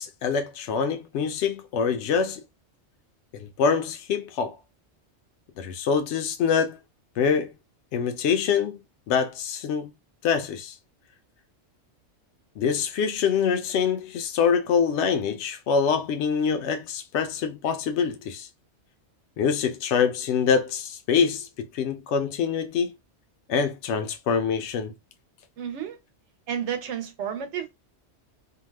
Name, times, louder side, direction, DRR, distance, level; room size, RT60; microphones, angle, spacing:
voice 1, 0.0-2.4 3.3-4.6 5.6-6.8 7.2-7.5 7.9-8.8 9.1-9.9 10.2-10.7 12.6-18.5 19.4-22.9 23.5-24.9, left 6 dB, 80° left, 0.9 m, -25 dB
voice 2, 25.6-26.0 26.5-27.8, right 8 dB, 85° right, 1.0 m, -31 dB
2.7 x 2.2 x 3.1 m
omnidirectional pair, 1.2 m